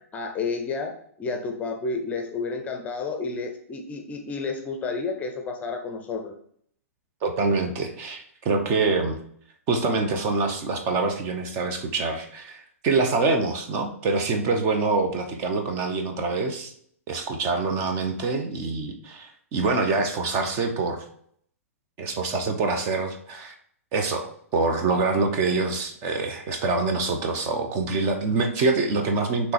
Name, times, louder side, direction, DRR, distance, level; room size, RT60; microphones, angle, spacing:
voice 1, 0.1-0.9 1.2-6.3, left 4 dB, 20° left, 4 dB, 0.7 m, -30 dB
voice 2, 7.2-9.2 9.7-16.7 17.1-21.0 22.0-23.5 23.9-29.5, right 3 dB, 30° right, 4 dB, 0.9 m, -25 dB
5.9 x 3.2 x 4.9 m, 0.64 s
figure-of-eight pair, 105°, 8 cm